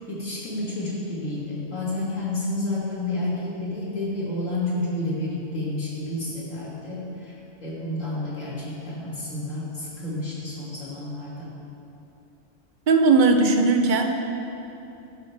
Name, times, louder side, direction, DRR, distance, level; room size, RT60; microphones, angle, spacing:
voice 1, 0.1-7.3 7.6-11.6, left 2 dB, 75° left, -7 dB, 2.4 m, -30 dB
voice 2, 12.9-14.2, right 3 dB, 50° right, 4 dB, 0.6 m, -18 dB
12.0 x 5.5 x 3.3 m, 2.8 s
omnidirectional pair, 1.3 m